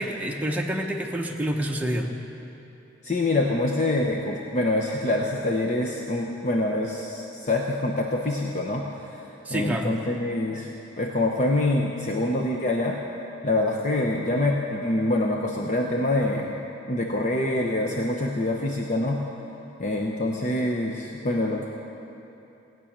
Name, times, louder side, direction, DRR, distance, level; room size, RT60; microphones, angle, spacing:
voice 1, 0.0-2.1 9.4-10.0, right 1 dB, 10° right, 0 dB, 0.9 m, -28 dB
voice 2, 3.0-9.2 9.5-10.7 11.0-13.0 13.4-16.6 16.9-19.2 19.8-21.7, left 2 dB, 35° left, 0 dB, 0.7 m, -25 dB
16.5 x 6.2 x 8.6 m, 3.0 s
head